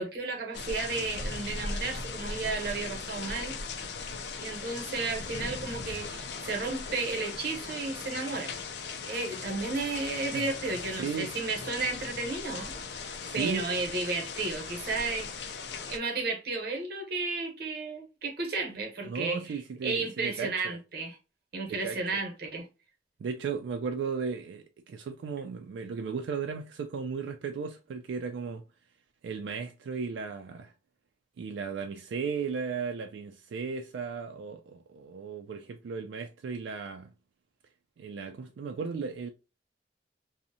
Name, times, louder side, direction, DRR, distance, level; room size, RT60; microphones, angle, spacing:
voice 1, 0.0-3.6 4.4-8.5 9.1-15.5 15.9-21.2 21.5-22.7, right 3 dB, 60° right, 0.8 m, -33 dB
sound 1, 0.5-16.0, left 4 dB, 65° left, 0.4 m, -38 dB
voice 2, 11.0-11.3 13.2-13.6 19.1-20.8 21.7-22.0 23.2-28.6 29.2-30.7 31.4-37.1 38.0-39.3, right 5 dB, 90° right, 0.3 m, -35 dB
2.6 x 2.1 x 2.6 m
head